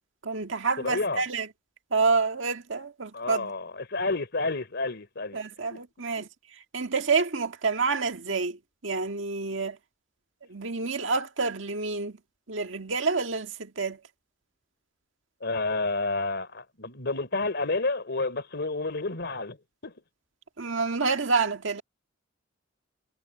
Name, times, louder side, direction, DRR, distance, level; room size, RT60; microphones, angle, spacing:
voice 1, 0.2-1.5 1.9-3.5 5.3-9.8 10.5-12.2 12.5-14.0 20.6-21.8, right 4 dB, 70° right, 1.8 m, -28 dB
voice 2, 0.8-1.2 3.1-5.4 5.7-5.8 6.2-6.3 15.4-19.6 19.8-19.9, left 3 dB, 60° left, 3.5 m, -30 dB
head